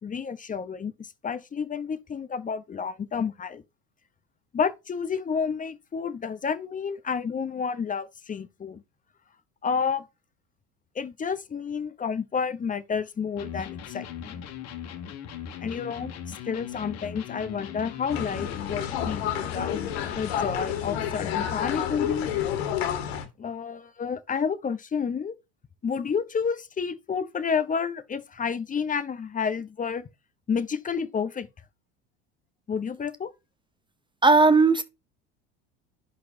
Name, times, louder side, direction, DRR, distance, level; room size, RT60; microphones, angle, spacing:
voice 1, 0.0-3.6 4.5-8.8 9.6-10.0 10.9-14.4 15.6-19.8 20.1-22.3 23.4-25.3 25.8-30.1 30.5-31.5 32.7-33.3, left 6 dB, 25° left, 0.8 m, -30 dB
Electric guitar, 13.4-20.7, left 8 dB, 55° left, 1.9 m, -39 dB
sound 1, 18.1-23.2, left 9 dB, 85° left, 1.9 m, -30 dB
voice 2, 34.2-34.8, right 3 dB, 15° right, 0.7 m, -17 dB
11.0 x 4.2 x 2.7 m
hypercardioid pair, 85°, 31 cm